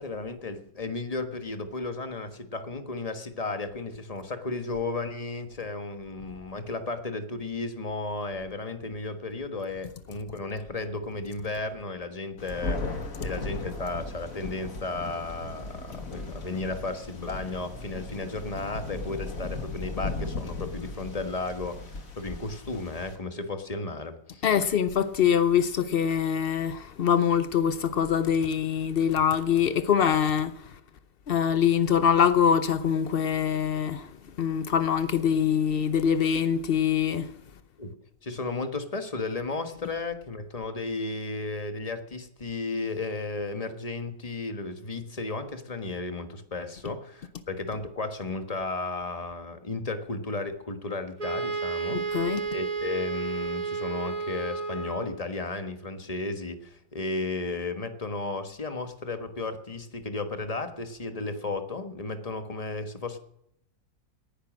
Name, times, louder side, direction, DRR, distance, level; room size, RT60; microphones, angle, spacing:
voice 1, 0.0-24.5 37.8-37.9 38.2-63.2, left 3 dB, 25° left, 1.3 m, -34 dB
Thunder, 12.4-23.2, left 3 dB, 50° left, 2.3 m, -37 dB
voice 2, 24.4-30.7 31.3-34.1 34.4-37.3 51.9-52.4, left 8 dB, 70° left, 0.5 m, -24 dB
Wind instrument woodwind instrument, 51.2-55.2, right 5 dB, 25° right, 3.6 m, -32 dB
18.5 x 10.5 x 6.2 m
omnidirectional pair, 1.9 m